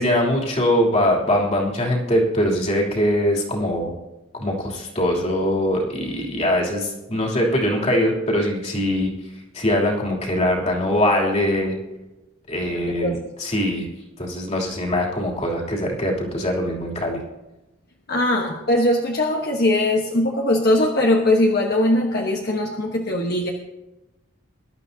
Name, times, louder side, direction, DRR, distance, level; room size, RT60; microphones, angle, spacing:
voice 1, 0.0-3.9 4.3-9.1 9.5-11.8 12.5-13.9 14.2-17.2, left 1 dB, 35° left, -1 dB, 3.0 m, -22 dB
voice 2, 12.7-13.2 18.1-23.5, left 1 dB, 50° left, 0 dB, 1.2 m, -20 dB
22.0 x 12.0 x 2.8 m, 0.99 s
head